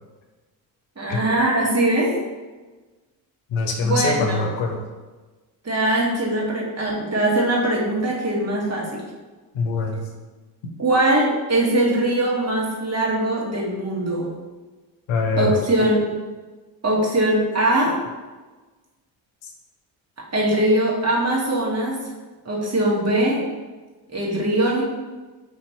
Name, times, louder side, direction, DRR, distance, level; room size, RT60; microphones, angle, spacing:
voice 1, 1.0-2.2 3.8-4.5 5.6-9.0 10.8-14.3 15.4-16.1 16.8-18.0 20.3-22.0 22.4-23.4 24.1-24.8, right 1 dB, 30° right, -4 dB, 1.4 m, -21 dB
voice 2, 3.5-4.8 9.5-10.0 15.1-15.5, left 3 dB, 65° left, 3 dB, 0.9 m, -23 dB
3.3 x 2.9 x 4.2 m, 1.3 s
supercardioid pair, 60°, 49 cm